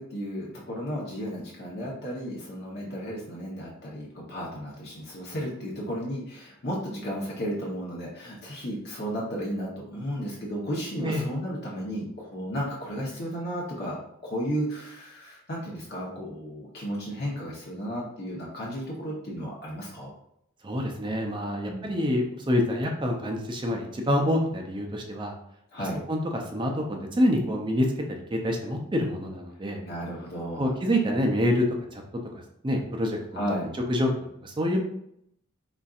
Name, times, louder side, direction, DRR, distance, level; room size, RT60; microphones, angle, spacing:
voice 1, 0.0-14.0 14.2-20.1 21.7-21.9 25.7-26.0 29.8-30.7 33.3-33.7, equal, 50° left, -4 dB, 0.9 m, -33 dB
voice 2, 20.6-25.3 25.8-29.8 30.6-31.6 31.9-32.0 32.6-33.4 33.9-34.1 34.4-34.8, equal, 25° right, 2 dB, 0.5 m, -27 dB
4.2 x 3.7 x 2.4 m, 0.74 s
head